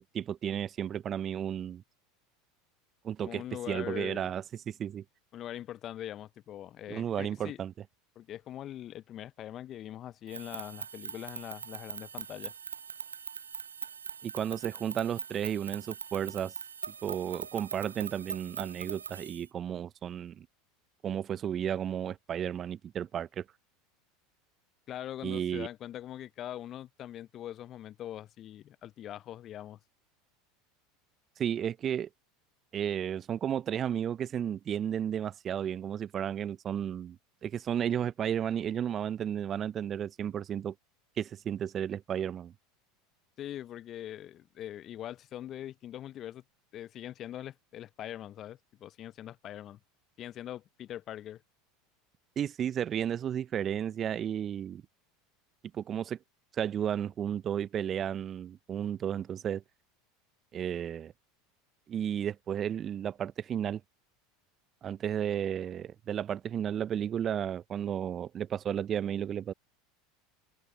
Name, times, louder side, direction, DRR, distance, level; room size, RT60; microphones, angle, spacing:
voice 1, 0.0-1.8 3.0-5.0 6.9-7.7 14.2-16.5 17.0-20.5 21.0-23.4 25.2-25.7 31.4-32.1 32.7-40.7 41.2-42.5 52.4-54.8 55.7-56.2 56.5-59.6 60.5-61.1 61.9-63.8 64.8-69.5, right 9 dB, 35° right, 0.8 m, -33 dB
voice 2, 3.3-4.3 5.3-7.6 8.2-12.5 24.9-29.8 43.4-46.4 46.7-49.8 50.2-51.4, left 12 dB, 40° left, 0.9 m, -42 dB
sound 1, 10.3-19.5, right 6 dB, 80° right, 0.4 m, -42 dB
open air
figure-of-eight pair, 80°, 0 cm